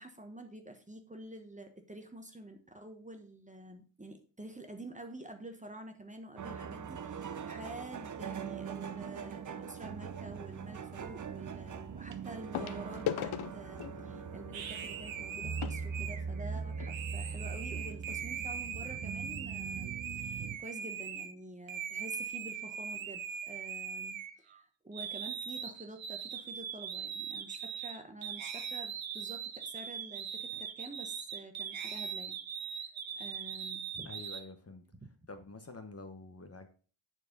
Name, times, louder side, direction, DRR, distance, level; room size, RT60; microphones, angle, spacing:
voice 1, 0.0-32.4 32.6-32.9 33.2-34.1, right 1 dB, 15° right, 6 dB, 1.2 m, -48 dB
sound 1, 6.4-20.6, right 6 dB, 40° right, 0.7 m, -41 dB
sound 2, 9.0-9.3 10.9-11.0 12.5-16.9 17.7-17.8 18.0-18.2 18.7-18.8, left 10 dB, 75° left, 0.7 m, -41 dB
sound 3, 14.5-21.3 21.7-24.6 24.9-34.4, right 7 dB, 70° right, 1.0 m, -41 dB
voice 2, 34.0-34.8 35.3-36.7, left 2 dB, 30° left, 7 dB, 1.1 m, -47 dB
9.7 x 4.6 x 5.2 m, 0.38 s
wide cardioid pair, 120°, 49 cm